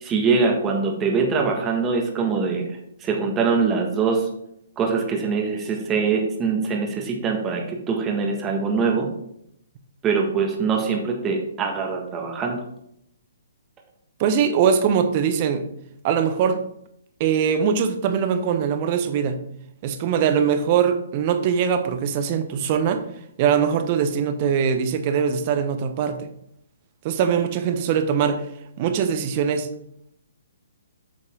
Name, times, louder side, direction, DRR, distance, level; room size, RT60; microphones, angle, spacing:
voice 1, 0.0-2.6 3.0-4.3 4.8-9.1 10.0-12.6, right 5 dB, 20° right, 1 dB, 1.6 m, -23 dB
voice 2, 14.2-15.6 16.0-16.6 17.2-19.4 19.8-23.0 23.4-26.3 27.0-28.4 28.8-29.7, right 7 dB, 35° right, 9 dB, 1.0 m, -22 dB
8.6 x 6.5 x 3.7 m, 0.75 s
figure-of-eight pair, 130°, 0 cm